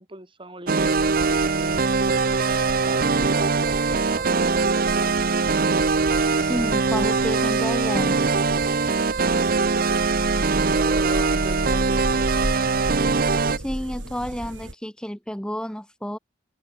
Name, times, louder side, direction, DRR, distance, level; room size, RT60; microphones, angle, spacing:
voice 1, 0.0-1.8 2.8-5.6 10.4-12.3, right 2 dB, 25° right, 6.5 m, -39 dB
sound 1, 0.7-13.6, right 4 dB, 50° right, 0.8 m, -22 dB
sound 2, 0.8-14.7, right 1 dB, 85° right, 5.7 m, -34 dB
voice 2, 6.4-8.2 13.6-16.2, equal, 5° left, 1.5 m, -30 dB
head